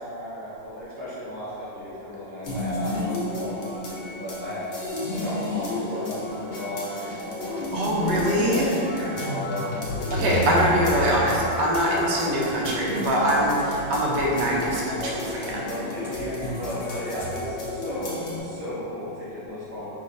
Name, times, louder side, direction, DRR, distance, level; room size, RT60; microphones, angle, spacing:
voice 1, 0.0-8.0 8.5-10.5 11.9-12.0 15.5-19.9, left 1 dB, 10° left, -11 dB, 0.4 m, -34 dB
sound 1, 2.4-18.4, left 1 dB, 55° left, 0.6 m, -31 dB
voice 2, 7.7-8.7 10.1-15.6, equal, 75° right, -4 dB, 1.3 m, -23 dB
4.6 x 3.3 x 2.6 m, 2.9 s
omnidirectional pair, 2.0 m